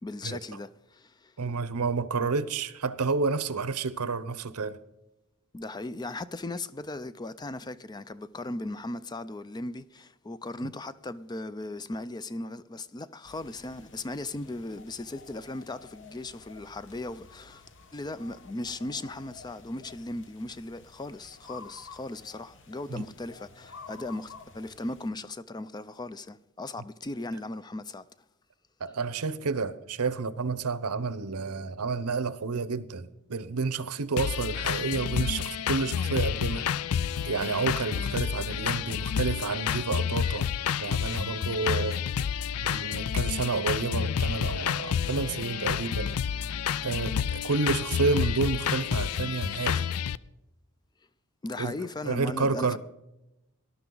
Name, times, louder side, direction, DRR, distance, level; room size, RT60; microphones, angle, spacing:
voice 1, 0.0-1.3 5.5-17.6 17.9-28.1 51.4-52.8, left 2 dB, 20° left, 0.4 m, -37 dB
voice 2, 1.4-4.8 22.9-23.1 28.8-36.7 37.2-40.5 40.8-42.0 42.6-46.1 46.8-49.9 51.6-51.7 52.0-52.8, right 4 dB, 90° right, 0.8 m, -30 dB
sound 1, 13.2-25.1, left 4 dB, 55° left, 1.2 m, -51 dB
sound 2, 34.2-50.2, left 8 dB, 80° left, 0.4 m, -29 dB
18.5 x 11.5 x 3.9 m
head